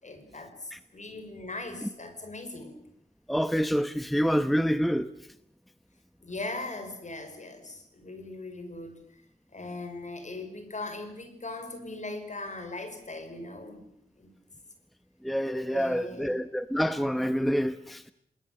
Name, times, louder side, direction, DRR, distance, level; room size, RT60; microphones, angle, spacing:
voice 1, 0.0-2.8 6.2-9.2 9.5-13.8 14.2-14.3 15.6-16.4, left 2 dB, 50° left, 8 dB, 5.5 m, -39 dB
voice 2, 3.3-5.1 15.2-18.1, equal, ahead, 12 dB, 0.9 m, -27 dB
29.0 x 20.5 x 7.8 m, 0.71 s
wide cardioid pair, 80°, 16 cm